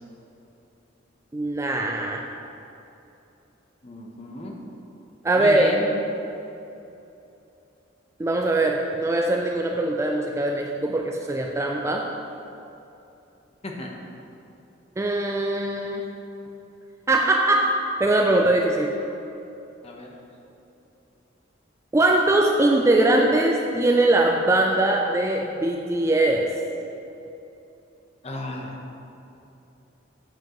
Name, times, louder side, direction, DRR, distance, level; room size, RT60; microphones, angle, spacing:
voice 1, 1.3-2.2 5.2-5.6 8.2-12.1 15.0-16.0 17.1-17.7 18.0-18.9 21.9-26.5, right 2 dB, 15° right, 1 dB, 0.3 m, -21 dB
voice 2, 3.8-4.5 5.3-5.9 13.6-13.9 19.8-20.2 28.2-28.8, left 1 dB, 30° left, 0 dB, 0.8 m, -34 dB
7.7 x 7.2 x 3.0 m, 2.8 s
head